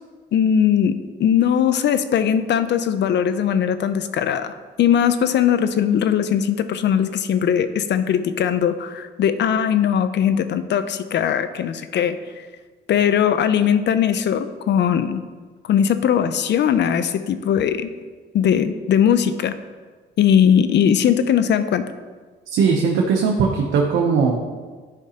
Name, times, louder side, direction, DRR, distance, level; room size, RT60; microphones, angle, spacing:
voice 1, 0.3-4.5 4.8-12.5 12.9-15.2 15.7-17.9 18.3-19.6 20.2-21.9, left 8 dB, 60° left, 11 dB, 0.5 m, -19 dB
voice 2, 22.5-24.3, right 5 dB, 85° right, 0 dB, 0.8 m, -19 dB
11.5 x 5.0 x 2.9 m, 1.4 s
cardioid pair, 90°, 20 cm